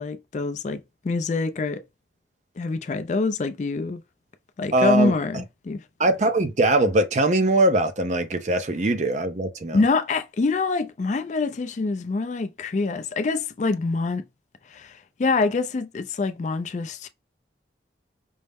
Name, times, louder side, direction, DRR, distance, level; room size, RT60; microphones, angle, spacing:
voice 1, 0.0-1.8 2.6-4.0 4.6-5.8 9.7-14.2 14.7-17.1, left 3 dB, 40° left, 0.3 m, -25 dB
voice 2, 4.7-5.1 6.0-9.8, right 2 dB, 40° right, 0.6 m, -21 dB
5.4 x 2.0 x 3.4 m
head